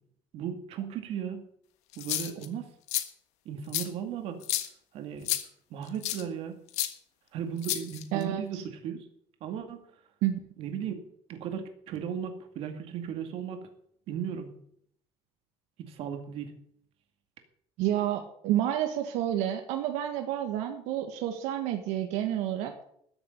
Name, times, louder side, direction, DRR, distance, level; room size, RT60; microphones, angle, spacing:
voice 1, 0.3-1.5 2.0-2.7 3.5-4.4 4.9-5.3 5.7-6.6 7.3-9.1 9.4-9.9 10.6-11.0 11.3-13.6 14.1-14.5 15.8-16.5, right 8 dB, 55° right, 6 dB, 2.2 m, -36 dB
sound 1, 1.9-2.5 2.9-3.0 3.7-3.9 4.4-4.7 5.3-5.4 6.0-6.2 6.7-6.9 7.6-8.2, left 14 dB, 75° left, 1.5 m, -30 dB
voice 2, 8.1-8.6 10.2-10.4 17.8-22.7, right 12 dB, 85° right, 5 dB, 1.6 m, -29 dB
13.5 x 7.0 x 8.7 m, 0.69 s
cardioid pair, 165°, 12 cm